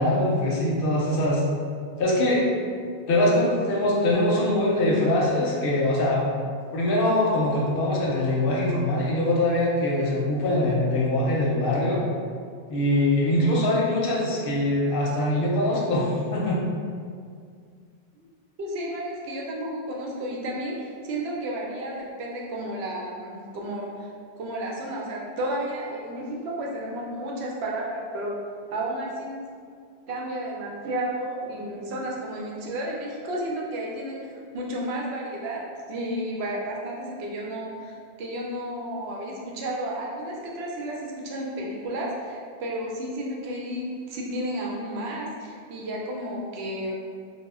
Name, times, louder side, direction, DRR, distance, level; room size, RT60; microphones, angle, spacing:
voice 1, 0.0-1.4 2.0-2.4 3.1-6.2 6.7-12.0 12.7-16.6, left 1 dB, 65° left, -4 dB, 0.7 m, -23 dB
voice 2, 18.6-24.1 24.4-28.4 28.7-29.4 30.1-46.9, right 1 dB, 80° right, -3 dB, 0.8 m, -32 dB
2.1 x 2.1 x 3.5 m, 2.1 s
omnidirectional pair, 1.1 m